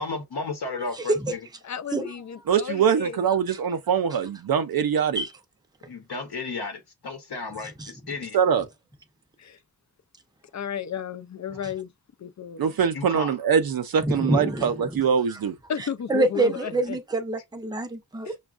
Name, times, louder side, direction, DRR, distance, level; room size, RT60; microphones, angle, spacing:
voice 1, 0.0-1.4 5.8-8.4 12.7-13.4, left 3 dB, 70° left, 0.9 m, -33 dB
voice 2, 0.9-1.4 1.9-2.1 5.1-5.3 7.8-7.9 14.0-15.4 16.1-18.4, right 2 dB, 10° right, 0.6 m, -26 dB
voice 3, 1.6-3.2 9.4-9.6 10.5-11.9 12.2-12.7 15.7-17.0 18.2-18.4, left 8 dB, 45° left, 0.4 m, -33 dB
voice 4, 2.5-5.2 8.3-8.6 12.6-15.5, right 7 dB, 65° right, 0.5 m, -23 dB
6.0 x 2.3 x 2.4 m
wide cardioid pair, 125°, 39 cm